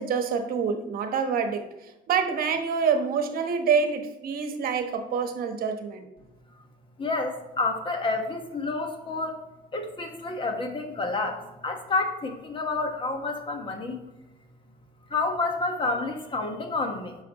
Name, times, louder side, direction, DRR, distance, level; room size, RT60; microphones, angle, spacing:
voice 1, 0.0-1.6 2.1-6.0, right 6 dB, 60° right, 6 dB, 1.1 m, -26 dB
voice 2, 7.0-9.4 9.7-14.0 15.1-17.1, left 3 dB, 30° left, 4 dB, 1.4 m, -29 dB
9.5 x 6.0 x 3.0 m, 1.0 s
cardioid pair, 110°, 17 cm